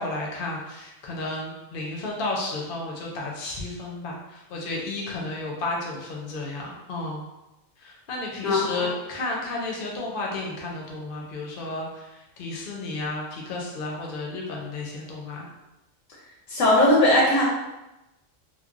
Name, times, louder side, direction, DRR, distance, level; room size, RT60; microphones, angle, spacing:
voice 1, 0.0-7.2 7.8-15.5, left 2 dB, 55° left, -1 dB, 0.7 m, -32 dB
voice 2, 8.4-8.9 16.5-17.4, left 1 dB, 80° left, -3 dB, 1.0 m, -19 dB
3.1 x 2.2 x 2.4 m, 0.97 s
omnidirectional pair, 1.4 m